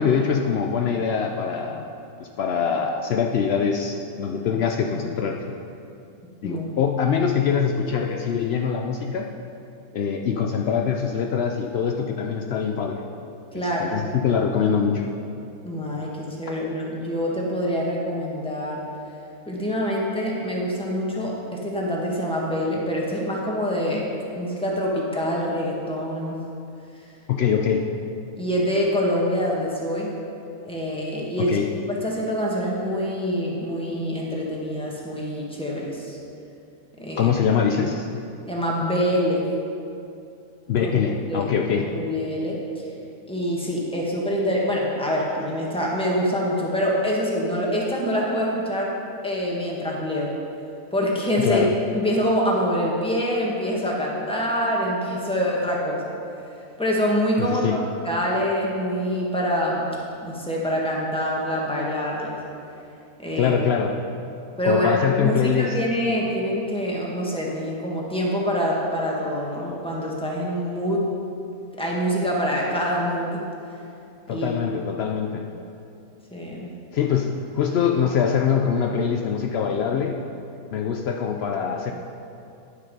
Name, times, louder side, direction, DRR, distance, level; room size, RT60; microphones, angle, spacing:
voice 1, 0.0-1.9 2.2-5.6 6.4-9.3 9.9-13.0 13.5-15.1 27.3-27.9 31.4-31.7 37.2-38.1 40.7-41.9 51.4-51.8 57.4-57.8 63.4-64.0 64.6-65.8 74.3-75.4 76.9-80.2 80.7-81.9, left 7 dB, 80° left, 3 dB, 0.5 m, -23 dB
voice 2, 13.5-14.0 15.6-18.8 19.5-24.0 24.3-26.4 28.4-30.1 30.6-31.5 32.0-36.2 37.0-37.3 38.5-39.4 40.8-40.9 41.3-41.4 41.8-42.6 43.3-48.9 49.2-50.3 50.9-51.6 51.9-56.0 56.8-57.8 58.0-59.9 60.2-62.4 63.2-63.6 64.6-71.1 71.8-73.4 74.3-74.5 76.3-76.7, equal, 5° left, -4 dB, 1.3 m, -25 dB
10.0 x 6.7 x 5.3 m, 2.6 s
omnidirectional pair, 1.7 m